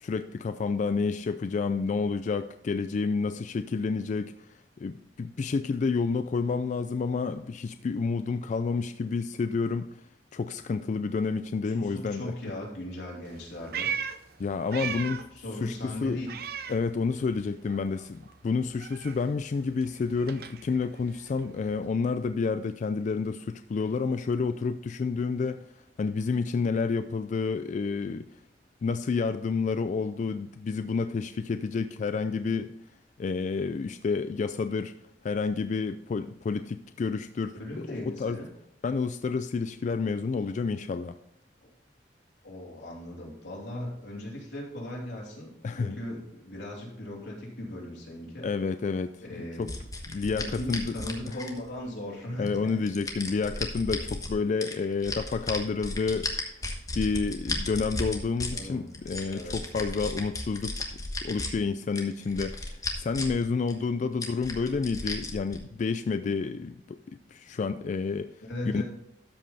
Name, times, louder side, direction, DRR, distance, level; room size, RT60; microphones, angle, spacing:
voice 1, 0.0-10.1 10.3-12.3 14.4-15.2 15.6-16.2 16.7-25.6 26.0-28.4 28.8-32.7 33.2-34.9 35.2-38.4 38.8-41.2 45.6-46.0 48.4-49.7 50.1-51.0 51.3-51.4 52.4-56.6 56.9-60.8 61.2-68.8, left 4 dB, 45° left, 0.3 m, -30 dB
voice 2, 11.7-13.9 14.7-15.0 15.3-16.3 37.5-38.5 41.6-41.7 42.4-48.5 49.2-49.8 50.4-52.8 58.5-58.8 59.3-59.6 68.4-68.8, left 1 dB, 90° left, 3.2 m, -38 dB
Meow, 13.3-15.4 15.7-17.4 17.7-21.9, right 7 dB, 60° right, 0.6 m, -38 dB
sound 1, 49.7-51.8 52.5-54.3 54.6-58.6 58.9-61.5 61.9-63.4 63.7-63.8 64.2-65.6, left 2 dB, 20° left, 1.2 m, -34 dB
13.0 x 5.3 x 4.1 m
head